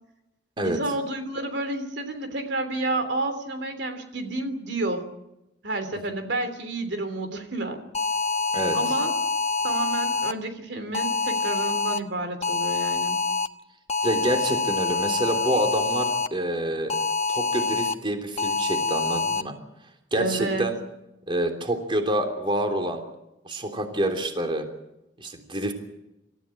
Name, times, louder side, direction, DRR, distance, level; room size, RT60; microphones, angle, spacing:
voice 1, 0.6-5.0 5.6-7.8 8.7-9.1 9.6-13.2 20.2-20.7, right 2 dB, 70° right, 7 dB, 3.2 m, -30 dB
sound 1, 7.9-10.3 10.9-12.0 12.4-13.5 13.9-16.3 16.9-17.9 18.4-19.4, left 3 dB, 40° left, 1.2 m, -26 dB
voice 2, 14.0-17.0 17.3-19.5 20.1-20.7 21.3-23.0 23.4-24.6 25.2-25.7, right 1 dB, 30° right, 5 dB, 3.2 m, -27 dB
27.5 x 15.0 x 8.6 m, 0.91 s
head